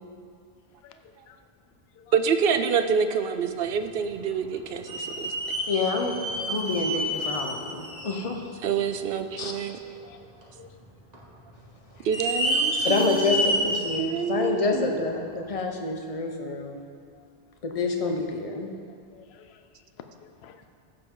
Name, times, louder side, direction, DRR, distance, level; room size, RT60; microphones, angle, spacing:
voice 1, 2.1-5.3 8.6-9.8 12.0-13.5 14.0-15.0, right 6 dB, 65° right, 9 dB, 0.8 m, -27 dB
sound 1, 4.0-4.2 4.8-8.2 8.7-8.8 9.5-9.6 10.4-10.9 11.1-11.2 12.0-14.0 14.4-14.5 15.5-15.6, equal, 40° right, 1.6 m, -28 dB
voice 2, 4.6-5.0 10.0-10.2 10.6-10.8 17.1-17.2 19.1-19.6 20.4-20.7, left 8 dB, 70° left, 8 dB, 0.9 m, -52 dB
voice 3, 5.7-6.2 6.5-8.5 9.4-9.5 12.8-16.8 17.6-18.7, left 3 dB, 35° left, 2 dB, 0.9 m, -27 dB
15.0 x 6.9 x 3.8 m, 2.2 s
omnidirectional pair, 1.1 m